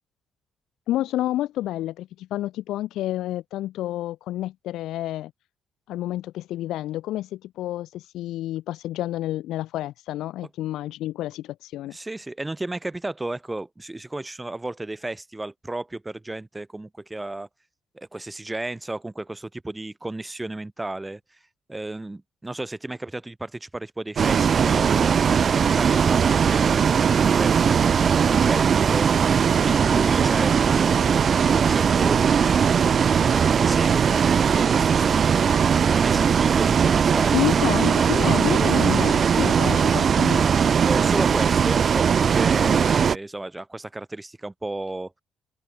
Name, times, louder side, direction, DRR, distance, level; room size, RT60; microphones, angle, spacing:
voice 1, 0.9-5.3 5.9-12.0 37.3-40.5, left 14 dB, 85° left, 2.3 m, -29 dB
voice 2, 11.9-17.5 17.9-21.4 21.7-29.1 29.6-32.7 33.2-35.5 35.9-37.5 40.8-45.1, right 2 dB, 15° right, 2.6 m, -33 dB
Bus, 24.2-43.2, right 7 dB, 50° right, 1.2 m, -19 dB
open air
cardioid pair, 90°, 0 cm